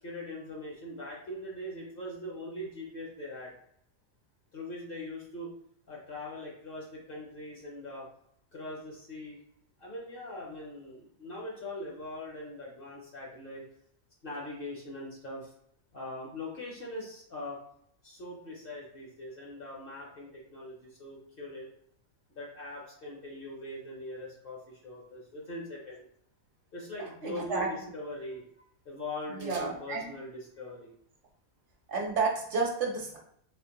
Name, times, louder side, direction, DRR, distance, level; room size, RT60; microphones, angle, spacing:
voice 1, 0.0-3.5 4.5-5.5 5.9-8.1 8.5-9.4 9.8-13.6 14.2-15.5 15.9-17.6 18.0-21.7 22.3-26.0 26.7-28.4 28.8-30.9, left 1 dB, 45° left, -3 dB, 0.9 m, -41 dB
voice 2, 27.0-27.7 29.3-30.1 31.9-33.2, right 4 dB, 65° right, 0 dB, 1.0 m, -31 dB
3.5 x 2.9 x 3.0 m, 0.69 s
omnidirectional pair, 1.4 m